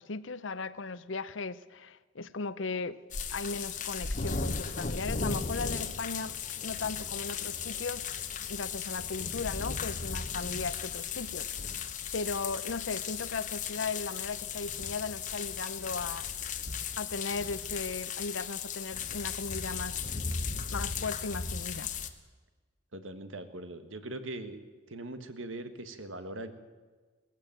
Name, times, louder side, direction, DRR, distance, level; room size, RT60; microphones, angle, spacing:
voice 1, 0.0-3.0 3.3-8.0 8.5-11.8 12.1-16.3 17.0-20.1 20.7-21.9, left 4 dB, 75° left, 0.7 m, -37 dB
sound 1, 3.1-22.1, left 6 dB, 40° left, 1.1 m, -36 dB
voice 2, 22.9-24.6 24.9-26.5, right 2 dB, 85° right, 1.7 m, -41 dB
18.5 x 15.0 x 9.0 m
head